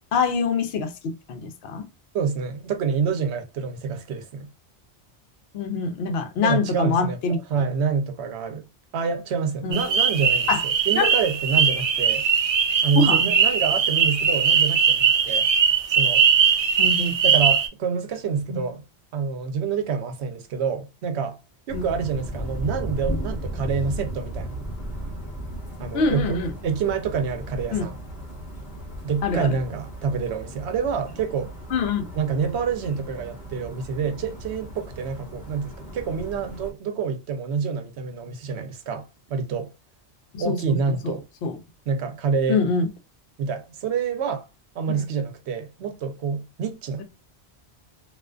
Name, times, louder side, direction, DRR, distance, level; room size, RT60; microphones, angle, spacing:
voice 1, 0.1-1.9 5.5-7.4 9.6-9.8 10.5-10.6 11.0-11.1 13.0-13.3 16.8-17.1 18.5-18.7 21.7-21.8 25.9-26.5 27.7-27.9 29.2-29.6 31.7-32.1 40.3-40.6 41.0-41.1 41.4-41.6 42.5-42.9, left 4 dB, 70° left, 0.8 m, -24 dB
voice 2, 2.1-4.5 6.4-8.7 8.9-12.3 12.8-15.5 15.9-16.2 17.2-18.8 19.1-21.4 21.7-24.5 25.8-26.4 26.6-28.0 29.0-31.5 32.1-39.7 40.4-41.2 41.9-42.6 43.4-44.5 44.8-47.0, right 6 dB, 80° right, 0.9 m, -27 dB
sound 1, 9.7-17.7, right 7 dB, 55° right, 0.4 m, -20 dB
sound 2, 21.7-36.7, right 1 dB, 40° left, 0.9 m, -35 dB
2.4 x 2.3 x 2.2 m
omnidirectional pair, 1.1 m